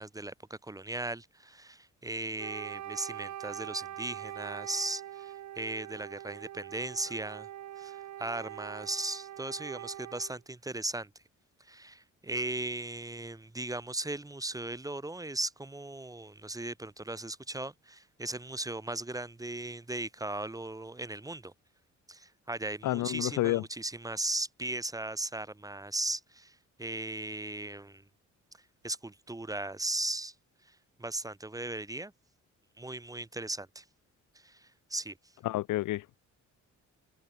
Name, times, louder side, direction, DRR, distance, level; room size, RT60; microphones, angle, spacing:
voice 1, 0.0-7.5 7.8-11.1 11.6-21.5 22.1-28.0 28.8-30.3 30.7-32.1 32.8-33.8 34.4-35.2, right 2 dB, 10° right, 1.3 m, -37 dB
Wind instrument woodwind instrument, 2.4-10.4, right 12 dB, 65° right, 1.5 m, -43 dB
voice 2, 22.8-23.6 35.4-36.2, left 16 dB, 85° left, 0.9 m, -30 dB
cardioid pair, 90°, 30 cm